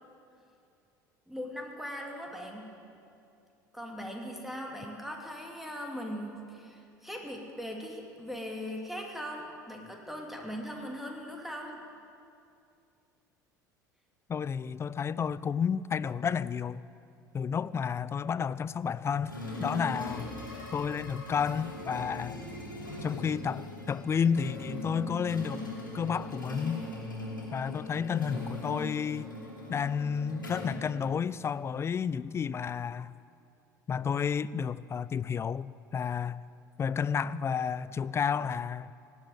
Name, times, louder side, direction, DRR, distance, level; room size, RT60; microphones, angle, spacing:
voice 1, 1.3-2.7 3.7-11.8, equal, ahead, 2.7 m, -40 dB
voice 2, 14.3-16.8 17.3-20.3 20.7-22.4 23.0-25.7 25.9-26.8 27.5-29.3 29.7-33.1 33.9-36.4 36.8-38.9, left 7 dB, 25° left, 0.4 m, -31 dB
sound 1, 19.3-31.5, left 1 dB, 90° left, 2.7 m, -40 dB
18.0 x 8.4 x 9.1 m
figure-of-eight pair, 65°, 10 cm